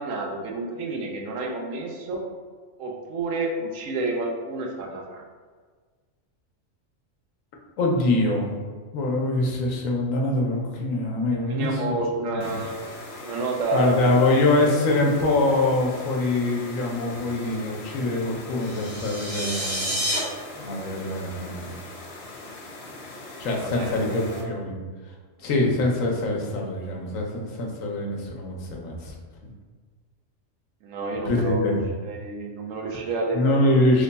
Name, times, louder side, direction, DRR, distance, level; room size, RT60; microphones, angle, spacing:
voice 1, 0.0-2.2 2.8-5.2 11.4-12.8 13.2-14.2 23.4-24.6 25.4-25.5 30.8-31.7 32.0-33.8, right 3 dB, 80° right, 1 dB, 1.0 m, -30 dB
voice 2, 7.8-8.6 8.9-12.0 12.3-12.6 13.7-19.9 20.6-21.8 23.4-24.7 25.4-29.1 31.2-31.8 33.3-34.0, left 2 dB, 90° left, -1 dB, 1.1 m, -24 dB
sound 1, 12.4-24.4, left 2 dB, 60° left, 0.8 m, -41 dB
sound 2, 18.6-20.2, equal, 20° right, 1.0 m, -29 dB
3.2 x 2.2 x 3.9 m, 1.5 s
omnidirectional pair, 1.3 m